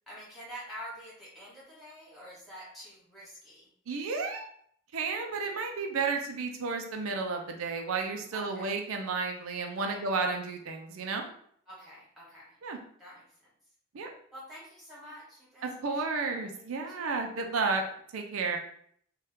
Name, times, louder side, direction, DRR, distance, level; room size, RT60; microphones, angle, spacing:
voice 1, 0.1-3.7 8.3-8.7 9.8-10.0 11.7-12.6 13.0-13.2 14.3-17.3, equal, ahead, -8 dB, 1.3 m, -47 dB
voice 2, 3.9-4.5 4.9-11.3 12.6-12.8 13.9-14.1 15.6-17.8 18.1-18.6, right 4 dB, 90° right, 3 dB, 0.5 m, -32 dB
2.7 x 2.3 x 3.4 m, 0.63 s
head